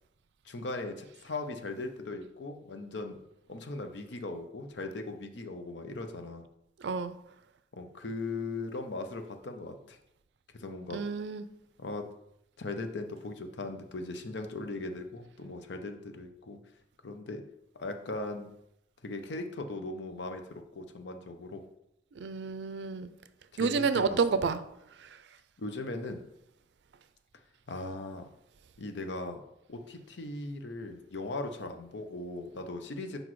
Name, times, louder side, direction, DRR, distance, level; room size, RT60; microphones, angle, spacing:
voice 1, 0.4-3.2 3.5-6.4 7.7-10.0 10.5-11.0 11.8-12.1 12.6-16.6 17.0-17.4 17.8-18.5 19.0-21.6 23.5-24.2 25.6-26.2 27.7-28.3 28.8-29.4 29.7-33.2, left 2 dB, 80° left, 6 dB, 0.7 m, -38 dB
voice 2, 6.8-7.2 10.9-11.4 22.2-23.1 23.6-24.6, right 5 dB, 75° right, 12 dB, 0.4 m, -29 dB
6.0 x 5.1 x 3.1 m, 0.81 s
head